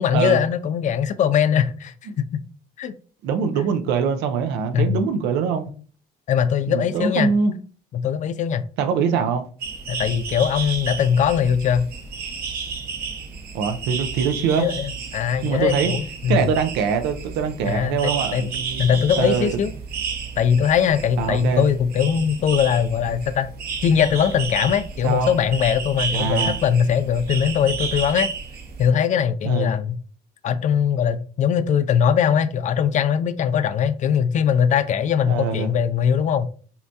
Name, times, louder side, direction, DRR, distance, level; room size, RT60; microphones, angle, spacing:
voice 1, 0.0-2.4 2.8-2.9 4.7-5.0 6.3-7.3 7.9-8.6 9.9-11.9 14.6-16.5 17.6-18.4 18.8-19.7 20.4-23.5 23.8-28.3 28.8-30.0 30.4-36.5, left 8 dB, 45° left, 0.4 m, -21 dB
voice 2, 3.2-5.7 6.7-7.5 8.8-9.5 13.5-14.7 15.4-15.9 16.3-18.8 19.2-19.5 21.2-21.7 25.0-25.3 26.1-26.6 29.4-29.7 35.3-35.7, right 6 dB, 85° right, 0.6 m, -23 dB
sound 1, 9.6-28.9, right 5 dB, 65° right, 0.9 m, -32 dB
5.5 x 2.2 x 2.7 m
cardioid pair, 110°, 17 cm